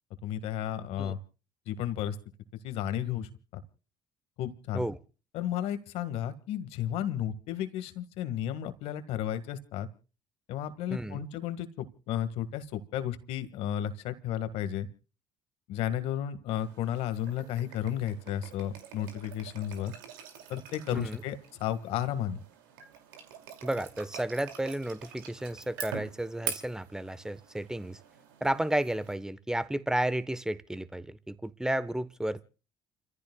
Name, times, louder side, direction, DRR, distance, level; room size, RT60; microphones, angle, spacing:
voice 1, 0.2-1.2 1.7-2.2 2.6-3.6 4.4-4.8 5.3-9.9 10.5-14.9 15.7-19.9 20.5-22.4, left 10 dB, 70° left, 1.8 m, -33 dB
voice 2, 10.9-11.3 20.9-21.2 23.6-28.0 28.4-32.4, right 1 dB, 5° right, 1.1 m, -32 dB
sound 1, 16.5-29.1, right 7 dB, 85° right, 2.5 m, -45 dB
29.5 x 15.0 x 2.3 m
hypercardioid pair, 65°, 11 cm